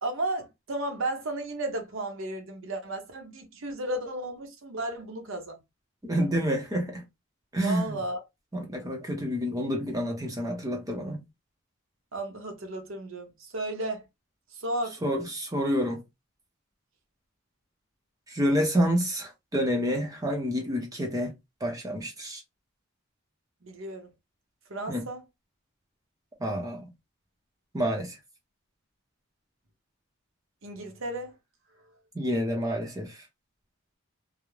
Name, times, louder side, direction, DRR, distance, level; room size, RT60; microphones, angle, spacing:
voice 1, 0.0-5.6 7.6-8.2 12.1-14.0 14.5-15.0 23.6-24.1 24.7-25.2 30.6-31.3, right 1 dB, 65° right, 0.7 m, -34 dB
voice 2, 6.0-7.0 7.5-7.9 8.5-11.2 15.0-16.0 18.3-21.3 21.6-22.4 24.9-25.1 26.4-26.8 27.7-28.2 32.1-33.2, equal, 15° right, 0.6 m, -28 dB
2.4 x 2.0 x 3.0 m
head